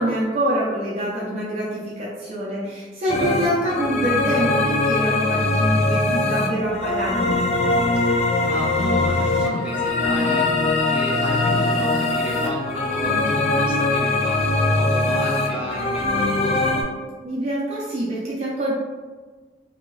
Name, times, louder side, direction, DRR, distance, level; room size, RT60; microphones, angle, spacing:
voice 1, 0.0-7.4 17.2-18.7, right 1 dB, 40° right, -6 dB, 0.5 m, -25 dB
sound 1, 3.1-16.8, left 2 dB, 35° left, 0.3 m, -21 dB
voice 2, 3.1-3.6 8.4-16.8, equal, 5° right, -8 dB, 0.7 m, -32 dB
2.6 x 2.3 x 3.1 m, 1.4 s
head